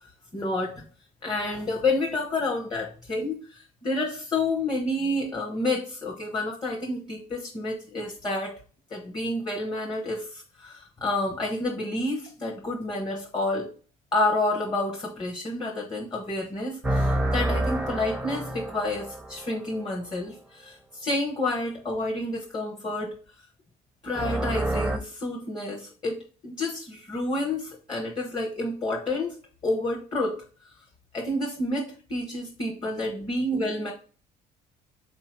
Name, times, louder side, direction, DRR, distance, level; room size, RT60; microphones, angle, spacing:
voice 1, 0.3-0.8 1.2-8.6 8.9-13.7 14.1-23.1 24.0-26.2 26.4-29.3 29.6-30.4 31.1-33.9, left 2 dB, 25° left, -1 dB, 0.9 m, -29 dB
sound 1, 16.8-19.9 24.1-25.0, right 1 dB, 5° right, 0.5 m, -28 dB
3.9 x 2.7 x 4.3 m, 0.39 s
cardioid pair, 110°, 17 cm